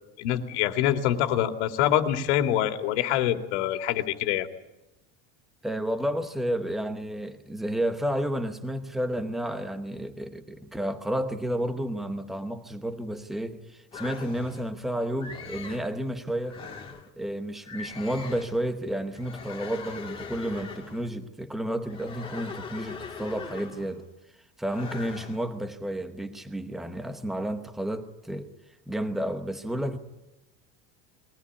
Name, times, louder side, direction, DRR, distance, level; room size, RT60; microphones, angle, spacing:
voice 1, 0.2-4.5, left 11 dB, 80° left, 2.5 m, -25 dB
voice 2, 5.6-16.6 17.2-24.0 24.6-28.5 28.9-30.0, right 1 dB, ahead, 0.9 m, -31 dB
sound 1, 13.9-14.7 15.2-15.9 16.4-17.1 17.6-18.6 19.1-21.1 21.8-24.0 24.7-25.5, left 5 dB, 15° left, 1.9 m, -41 dB
22.0 x 17.0 x 9.6 m
cardioid pair, 180°, 33 cm